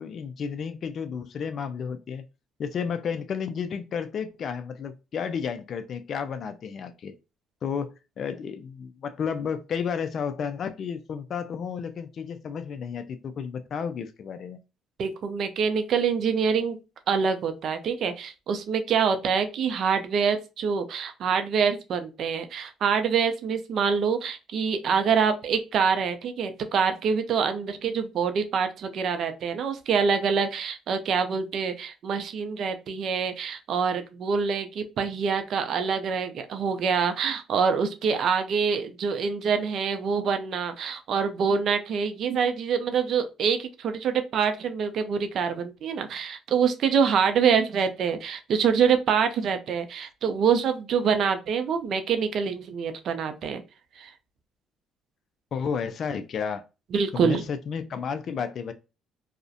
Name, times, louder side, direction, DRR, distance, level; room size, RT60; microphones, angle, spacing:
voice 1, 0.0-2.2 2.6-7.1 7.6-14.6 55.5-56.6 57.1-58.7, left 6 dB, 55° left, 0.3 m, -32 dB
voice 2, 15.0-16.8 17.1-53.6 54.0-54.1 56.9-57.4, right 6 dB, 60° right, 0.4 m, -25 dB
2.4 x 2.1 x 2.6 m
supercardioid pair, 80°, 0 cm